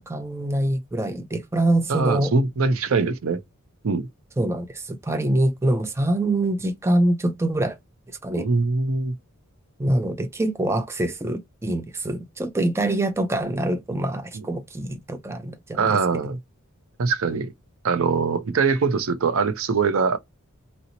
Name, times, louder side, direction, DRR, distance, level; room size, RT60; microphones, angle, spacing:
voice 1, 0.1-2.3 4.4-7.8 8.2-8.5 9.8-16.2, right 1 dB, 10° right, 0.4 m, -24 dB
voice 2, 1.9-3.4 3.8-4.1 8.3-9.2 14.3-14.5 15.7-16.4 17.0-17.5 17.8-20.2, right 4 dB, 65° right, 0.5 m, -22 dB
2.8 x 2.0 x 3.8 m
head